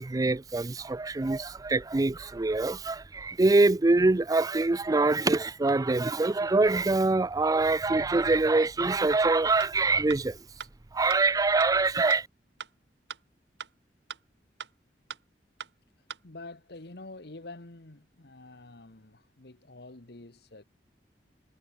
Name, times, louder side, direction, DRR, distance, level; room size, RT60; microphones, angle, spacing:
voice 1, 0.0-10.4 10.9-12.3, right 3 dB, 20° right, 0.4 m, -24 dB
sound 1, 9.6-9.7 10.1-10.2 10.6-10.7 11.1-11.2 11.6-11.7 12.1-12.2 12.6-12.7 13.1-13.2 13.6-13.7 14.1-14.2 14.6-14.7 15.1-15.2 15.6-15.7 16.1-16.2, right 7 dB, 80° right, 1.3 m, -39 dB
voice 2, 16.2-20.6, left 2 dB, 65° left, 1.6 m, -47 dB
head